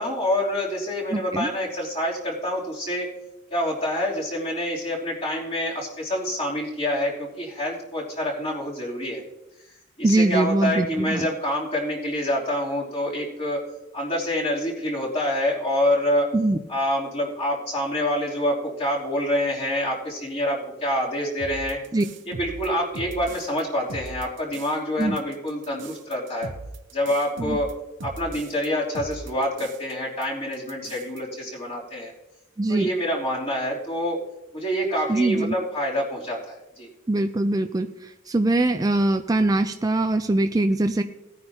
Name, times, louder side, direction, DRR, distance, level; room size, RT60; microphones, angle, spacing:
voice 1, 0.0-3.1 3.5-9.2 10.0-13.6 13.9-16.3 16.7-21.8 22.3-26.5 26.9-27.7 28.0-32.1 32.7-34.2 34.5-36.9, left 1 dB, 30° left, -5 dB, 3.3 m, -26 dB
voice 2, 1.1-1.5 10.0-11.3 16.3-16.6 21.9-22.0 25.0-25.2 27.4-27.6 32.6-32.9 35.1-35.6 37.1-41.0, right 2 dB, 20° right, 7 dB, 0.4 m, -22 dB
sound 1, 21.4-23.6 23.9-24.7 25.0-28.7 28.9-29.9 30.2-30.3 30.5-31.2, right 2 dB, 65° right, 0.8 m, -39 dB
18.5 x 9.7 x 2.9 m, 0.95 s
head